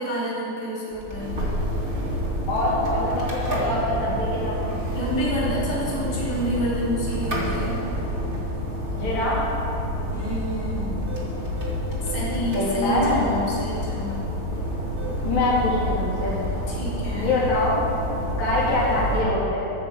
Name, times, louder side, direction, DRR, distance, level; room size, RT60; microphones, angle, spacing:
voice 1, 0.0-1.3 4.9-7.8 10.1-11.1 12.1-14.3 16.7-17.3, equal, 15° left, -7 dB, 3.0 m, -28 dB
sound 1, 0.9-19.2, equal, 20° right, 1.9 m, -28 dB
voice 2, 2.5-4.7 8.9-9.5 12.5-13.2 15.2-16.4 17.2-17.8 18.4-19.7, left 2 dB, 65° left, -7 dB, 4.1 m, -24 dB
13.0 x 6.3 x 8.0 m, 2.9 s
omnidirectional pair, 3.4 m